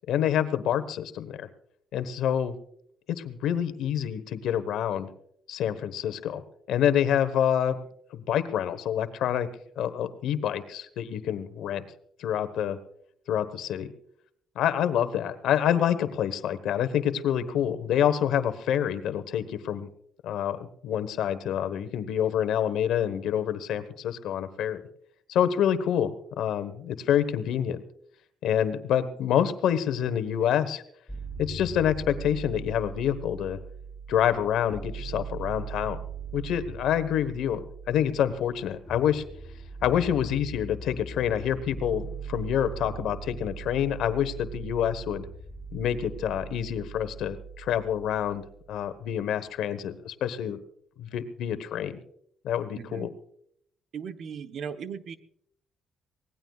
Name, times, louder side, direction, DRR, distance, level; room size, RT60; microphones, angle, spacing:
voice 1, 0.1-1.5 1.9-2.5 3.1-5.1 5.5-6.4 6.7-7.8 8.1-9.5 9.8-11.8 12.2-12.8 13.3-13.9 14.5-19.9 20.2-24.8 25.3-27.8 28.4-30.8 31.4-33.6 34.1-36.0 36.3-39.2 39.8-45.3 45.7-50.6 51.0-52.0 52.4-53.1, left 9 dB, 80° left, 12 dB, 1.2 m, -27 dB
sound 1, 31.1-49.0, right 5 dB, 10° left, 1.0 m, -40 dB
voice 2, 52.7-53.1 53.9-55.2, right 7 dB, 60° right, 9 dB, 1.0 m, -37 dB
24.0 x 18.0 x 2.4 m, 0.70 s
cardioid pair, 90°, 0 cm